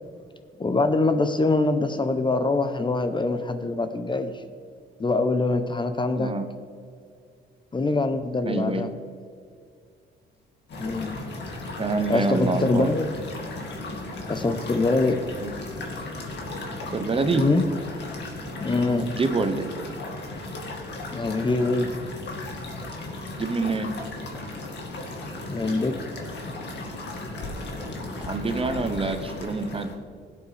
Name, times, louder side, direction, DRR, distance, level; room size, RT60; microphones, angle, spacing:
voice 1, 0.6-4.4 5.0-6.3 7.7-8.9 10.8-11.2 12.1-13.1 14.3-15.2 17.3-17.6 18.6-19.0 21.1-21.9 25.5-25.9, left 3 dB, 25° left, 9 dB, 0.7 m, -24 dB
voice 2, 6.2-6.5 8.4-8.8 11.8-12.9 15.4-15.5 16.9-17.4 19.0-19.7 23.3-23.9 28.2-29.9, right 3 dB, 30° right, 8 dB, 0.9 m, -26 dB
sound 1, 10.7-30.0, left 2 dB, 60° left, 2.2 m, -36 dB
16.5 x 8.2 x 3.4 m, 2.2 s
cardioid pair, 90°, 20 cm